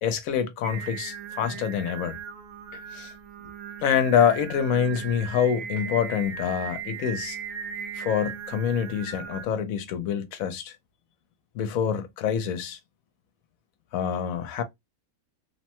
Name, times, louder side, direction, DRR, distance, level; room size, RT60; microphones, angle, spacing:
voice 1, 0.0-2.2 2.7-3.1 3.8-7.4 7.9-10.8 11.5-12.8 13.9-14.6, left 8 dB, 75° left, 1.0 m, -26 dB
Singing, 0.6-9.5, right 7 dB, 70° right, 0.9 m, -38 dB
3.3 x 2.1 x 2.8 m
omnidirectional pair, 1.6 m